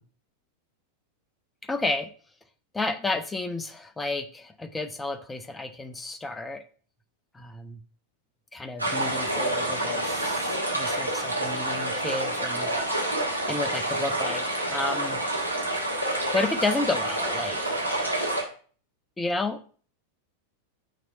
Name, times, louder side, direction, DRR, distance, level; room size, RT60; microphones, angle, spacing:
voice 1, 1.7-2.1 2.7-6.6 7.3-7.8 8.5-12.7 13.5-15.2 16.3-17.6 19.2-19.6, left 3 dB, 10° left, 9 dB, 0.5 m, -31 dB
sound 1, 8.8-18.4, right 1 dB, 90° right, 1.2 m, -28 dB
6.0 x 2.9 x 5.4 m, 0.42 s
figure-of-eight pair, 90°, 0 cm